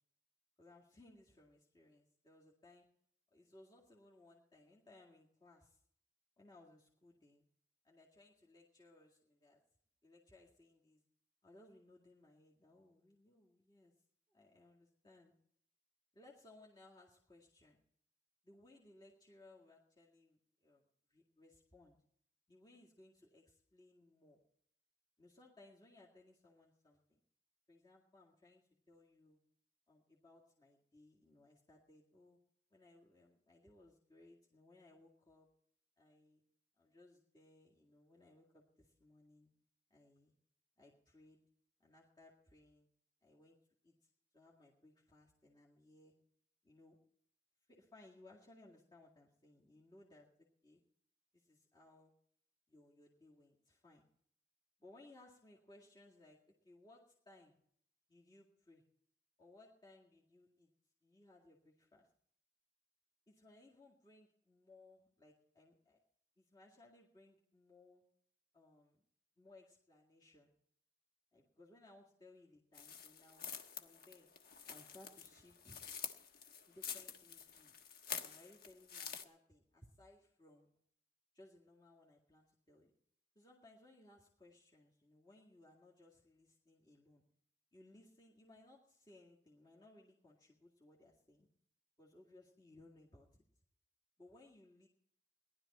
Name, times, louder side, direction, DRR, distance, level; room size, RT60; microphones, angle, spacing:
voice 1, 0.6-2.9 3.3-5.8 6.4-7.4 7.8-9.6 10.0-11.0 11.4-13.9 14.3-15.3 16.1-17.8 18.4-20.8 21.1-22.0 22.5-24.4 25.2-27.2 27.7-29.4 29.9-32.4 32.7-35.5 36.0-36.4 36.8-39.5 39.9-40.3 40.8-41.4 41.8-42.9 43.2-43.6 43.8-46.1 46.6-47.0 47.7-50.3 50.6-50.8 51.3-52.1 52.7-54.1 54.8-57.6 58.1-58.8 59.4-60.7 61.0-62.1 63.3-66.0 66.4-68.0 68.5-69.0 69.4-70.5 71.3-73.5 73.8-74.3 74.7-75.8 76.7-77.8 78.2-80.7 81.3-82.9 83.4-87.2 87.7-91.5 92.0-93.3 94.2-94.9, left 2 dB, 25° left, -4 dB, 2.1 m, -64 dB
sound 1, 72.7-79.2, left 7 dB, 60° left, 1.4 m, -48 dB
19.0 x 11.5 x 4.3 m, 0.67 s
head